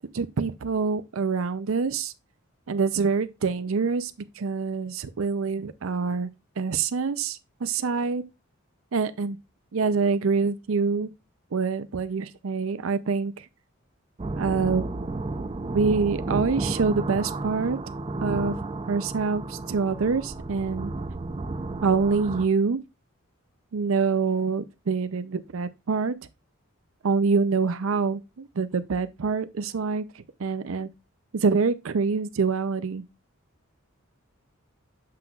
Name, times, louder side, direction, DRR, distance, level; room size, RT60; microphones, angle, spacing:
voice 1, 0.1-2.1 2.7-6.3 6.6-8.2 8.9-9.4 9.7-11.1 11.5-13.5 14.4-14.8 15.7-17.8 18.2-18.6 18.9-20.9 21.8-22.8 23.7-26.2 27.0-30.9 31.3-33.0, right 5 dB, 75° right, 0.5 m, -26 dB
sound 1, 14.2-22.5, right 2 dB, 25° right, 0.4 m, -32 dB
7.5 x 5.8 x 2.4 m
head